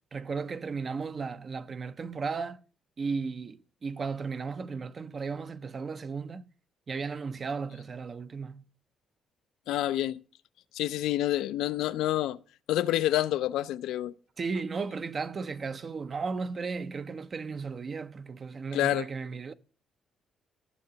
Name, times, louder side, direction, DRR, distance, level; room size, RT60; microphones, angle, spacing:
voice 1, 0.1-2.6 3.0-6.5 6.9-8.7 14.4-19.5, right 5 dB, 40° right, 0.5 m, -35 dB
voice 2, 9.7-10.2 10.7-12.4 12.7-14.1 18.7-19.1, left 13 dB, 90° left, 0.4 m, -28 dB
15.0 x 6.6 x 2.8 m
cardioid pair, 90°, 0 cm